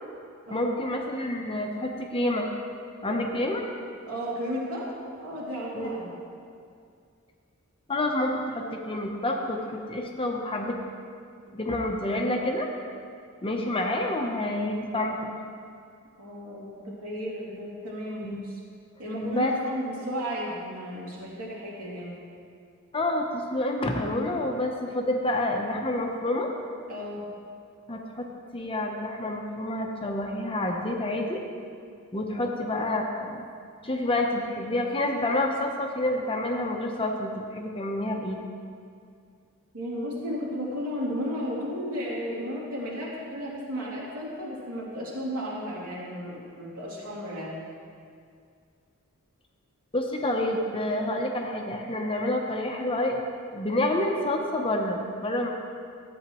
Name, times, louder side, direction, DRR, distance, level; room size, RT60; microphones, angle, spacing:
voice 1, 0.5-2.5 3.0-3.6 5.8-5.9 7.9-10.8 11.5-12.7 13.4-15.3 18.2-18.4 19.2-19.5 22.9-26.5 27.9-28.3 28.5-31.4 32.1-33.4 33.8-38.4 49.9-53.2 53.5-55.5, left 1 dB, 25° left, 2 dB, 0.7 m, -28 dB
voice 2, 4.1-6.1 16.2-18.6 19.0-22.2 26.9-27.3 32.4-32.6 39.7-47.6, equal, 75° right, -6 dB, 2.8 m, -34 dB
13.5 x 8.6 x 3.0 m, 2.3 s
head